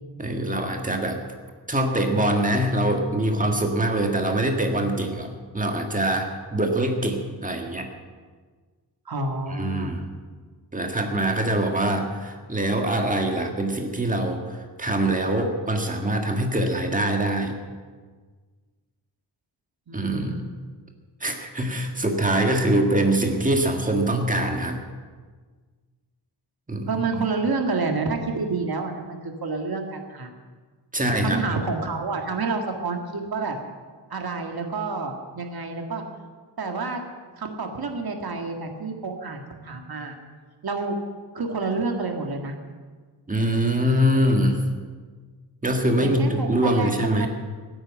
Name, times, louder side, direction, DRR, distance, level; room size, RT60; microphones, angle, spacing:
voice 1, 0.2-1.2 1.7-7.9 9.5-10.0 10.7-17.5 19.9-20.4 21.2-24.8 26.7-27.2 30.9-31.4 43.3-44.6 45.6-47.3, right 1 dB, 20° right, 3 dB, 1.7 m, -24 dB
voice 2, 9.1-10.0 19.9-20.5 26.9-30.3 31.2-33.6 34.1-36.0 36.6-37.0 37.4-40.2 40.6-41.0 41.3-42.6 46.0-47.3, right 4 dB, 60° right, 3 dB, 1.9 m, -29 dB
15.5 x 9.0 x 8.8 m, 1.5 s
wide cardioid pair, 180°, 42 cm